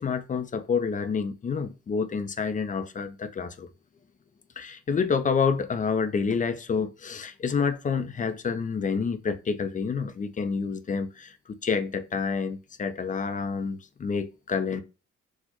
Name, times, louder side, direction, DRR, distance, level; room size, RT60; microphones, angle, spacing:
voice 1, 0.0-3.7 4.6-14.8, left 5 dB, 25° left, 0.4 m, -28 dB
4.2 x 2.1 x 2.9 m
cardioid pair, 90°, 30 cm